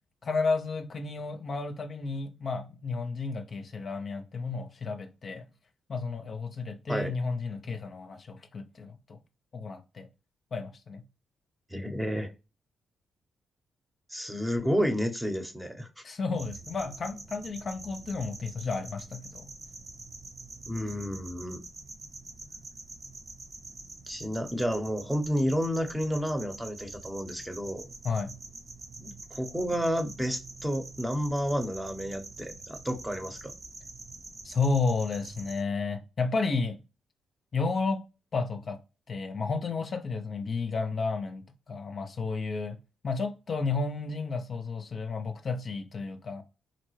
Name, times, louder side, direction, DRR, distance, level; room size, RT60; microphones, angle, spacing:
voice 1, 0.2-5.4 5.9-9.2 9.5-10.1 10.5-11.0 16.0-19.5 28.0-28.3 34.4-36.8 37.5-38.0 38.3-38.8 39.1-42.8 43.0-46.4, left 4 dB, 50° left, 0.5 m, -32 dB
voice 2, 11.7-12.3 14.1-15.9 20.7-21.6 24.1-27.9 29.0-33.5, equal, 10° right, 0.8 m, -31 dB
sound 1, 16.3-35.6, right 3 dB, 40° right, 0.7 m, -46 dB
4.0 x 2.1 x 3.1 m
hypercardioid pair, 50°, 0 cm